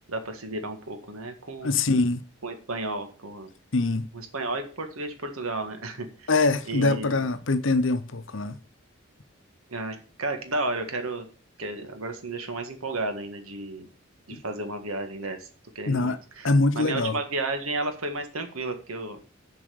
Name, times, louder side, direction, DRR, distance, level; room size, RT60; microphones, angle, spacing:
voice 1, 0.1-1.7 2.4-3.5 4.1-6.3 6.7-7.2 9.7-11.3 11.6-13.9 14.3-15.5 15.7-16.5 16.7-19.2, right 2 dB, 85° right, 1.8 m, -32 dB
voice 2, 1.6-2.2 3.7-4.1 6.3-8.6 14.3-14.4 15.9-16.2 16.4-17.1, left 3 dB, 60° left, 0.8 m, -23 dB
7.4 x 5.8 x 6.9 m
head